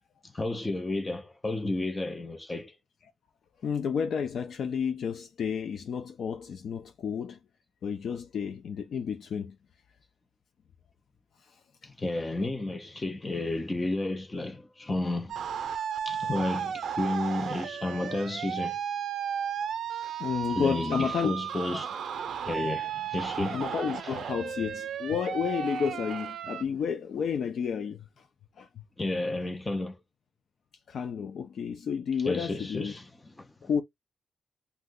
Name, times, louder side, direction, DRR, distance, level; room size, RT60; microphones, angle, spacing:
voice 1, 0.3-2.7 11.8-15.5 16.1-18.8 20.5-22.0 22.5-23.7 29.0-30.0 32.2-33.5, left 2 dB, 20° left, 0.5 m, -32 dB
voice 2, 3.6-7.4 7.8-9.6 11.5-11.6 20.2-21.3 23.3-28.0 28.6-28.7 30.9-32.9 33.6-33.8, left 7 dB, 65° left, 0.4 m, -31 dB
sound 1, 15.3-26.6, right 8 dB, 85° right, 0.5 m, -34 dB
2.7 x 2.2 x 3.6 m
wide cardioid pair, 165°, 0 cm